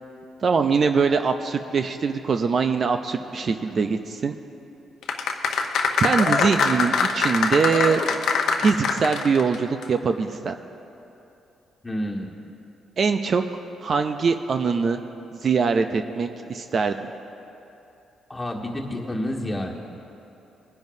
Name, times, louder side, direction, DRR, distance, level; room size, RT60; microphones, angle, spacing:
voice 1, 0.4-4.3 6.0-8.0 8.6-10.5 13.0-13.4 13.8-15.0 15.3-17.0, right 5 dB, 45° right, 7 dB, 0.5 m, -22 dB
sound 1, 5.0-9.6 9.8-9.9, left 5 dB, 75° left, 0.9 m, -23 dB
voice 2, 11.8-12.3 18.3-19.7, left 1 dB, 15° left, -1 dB, 1.7 m, -29 dB
21.5 x 10.5 x 2.7 m, 2.9 s
cardioid pair, 90°, 0 cm